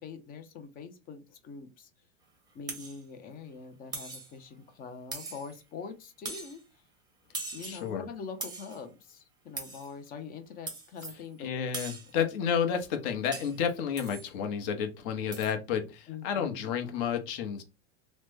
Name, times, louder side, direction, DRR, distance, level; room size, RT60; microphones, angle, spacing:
voice 1, 0.0-1.9 2.5-6.6 7.5-11.5 16.1-16.7, left 5 dB, 25° left, 0.5 m, -44 dB
sound 1, 2.7-3.0 3.9-4.3 5.1-5.6 6.3-6.6 7.3-7.9 8.4-8.8 9.6-9.9 10.7-11.2 11.7-12.1 13.3-13.6 14.0-14.3 15.3-15.5, right 3 dB, 10° right, 0.7 m, -40 dB
voice 2, 7.6-8.1 11.4-17.6, left 7 dB, 50° left, 0.8 m, -31 dB
3.0 x 2.1 x 3.3 m
supercardioid pair, 130°, 35 cm